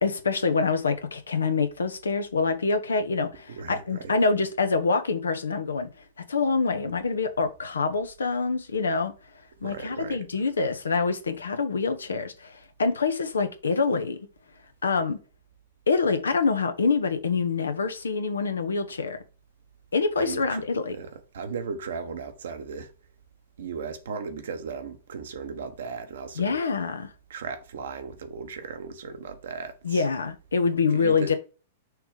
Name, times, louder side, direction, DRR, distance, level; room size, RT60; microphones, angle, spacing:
voice 1, 0.0-5.9 6.3-9.1 9.6-12.5 12.8-14.2 14.8-15.2 15.9-19.2 19.9-21.0 26.4-27.1 29.8-31.3, left 4 dB, 80° left, 1.0 m, -25 dB
voice 2, 3.5-4.1 9.6-10.5 20.2-22.9 23.6-26.6 27.3-30.0 30.9-31.3, right 5 dB, 70° right, 1.2 m, -36 dB
6.3 x 3.3 x 5.0 m
hypercardioid pair, 105°, 0 cm